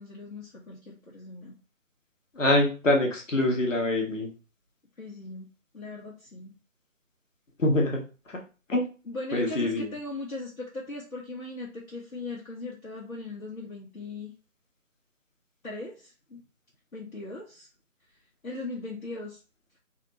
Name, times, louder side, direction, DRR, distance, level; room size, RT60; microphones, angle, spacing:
voice 1, 0.0-1.6 5.0-5.5 5.7-6.6 9.1-14.3 15.6-16.4 16.9-17.7 18.4-19.4, left 2 dB, 80° left, -5 dB, 1.2 m, -39 dB
voice 2, 2.3-4.3 7.6-8.0 8.7-8.8 9.3-9.9, left 1 dB, 60° left, 0 dB, 1.3 m, -24 dB
3.4 x 2.5 x 3.0 m, 0.33 s
figure-of-eight pair, 160°, 42 cm